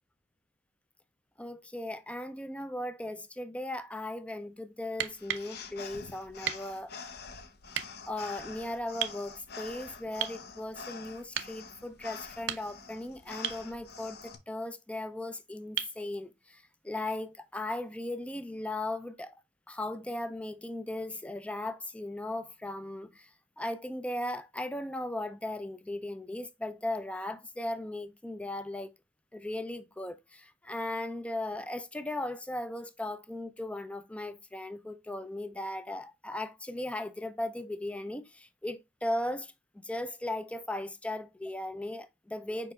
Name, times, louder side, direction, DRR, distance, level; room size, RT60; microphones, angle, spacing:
voice 1, 1.4-6.9 8.1-19.4 19.7-28.9 29.3-42.7, left 1 dB, 5° left, 0.4 m, -37 dB
sound 1, 4.9-5.5 6.4-6.7 7.7-7.9 9.0-9.2 10.2-10.4 11.3-11.6 12.3-12.9 13.4-13.7 15.8-16.0 17.8-17.9, right 11 dB, 75° right, 0.5 m, -35 dB
sound 2, 5.1-14.4, left 5 dB, 60° left, 0.7 m, -46 dB
4.9 x 4.7 x 2.3 m
head